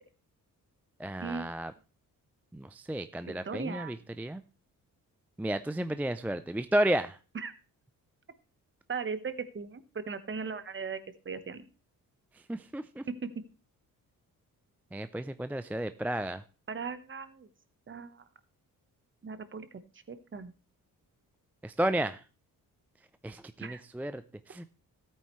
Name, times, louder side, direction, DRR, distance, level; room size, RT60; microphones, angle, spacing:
voice 1, 1.0-1.7 2.5-4.4 5.4-7.2 12.3-13.1 14.9-16.4 21.6-22.2 23.2-24.7, right 1 dB, 5° right, 11 dB, 0.4 m, -32 dB
voice 2, 3.2-3.9 7.4-7.5 8.9-11.0 11.2-11.6 13.1-13.3 16.7-17.5 17.9-18.3 19.2-19.8 20.1-20.5 23.6-23.8, right 5 dB, 35° right, 12 dB, 1.1 m, -38 dB
14.0 x 8.7 x 3.1 m, 0.34 s
cardioid pair, 100°, 35 cm